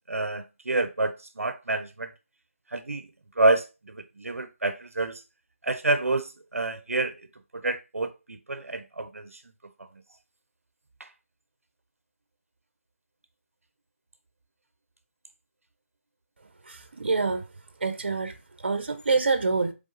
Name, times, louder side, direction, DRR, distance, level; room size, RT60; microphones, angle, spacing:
voice 1, 0.1-2.1 2.7-3.1 3.4-5.2 5.6-7.1 7.5-9.4 9.8-9.9 11.0-11.1, right 2 dB, 80° right, 0.6 m, -28 dB
voice 2, 16.6-17.4 17.8-19.7, right 4 dB, 45° right, 0.8 m, -26 dB
3.6 x 3.6 x 3.9 m
figure-of-eight pair, 165°, 7 cm